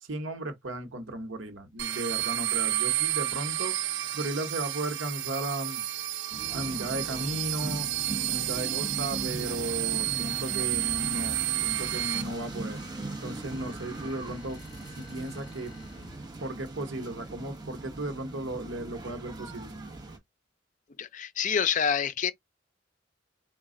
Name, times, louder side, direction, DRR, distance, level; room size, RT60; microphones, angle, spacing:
voice 1, 0.0-5.8 6.5-12.8 13.2-14.6 14.9-15.7 16.4-19.7, right 1 dB, 85° right, 1.0 m, -35 dB
sound 1, 1.8-12.2, right 14 dB, 70° right, 0.7 m, -31 dB
sound 2, 6.3-20.2, right 2 dB, 20° right, 1.3 m, -40 dB
sound 3, 10.3-16.4, left 2 dB, 25° left, 1.1 m, -51 dB
voice 2, 21.0-22.3, left 7 dB, 40° left, 0.4 m, -27 dB
4.1 x 2.3 x 3.7 m
head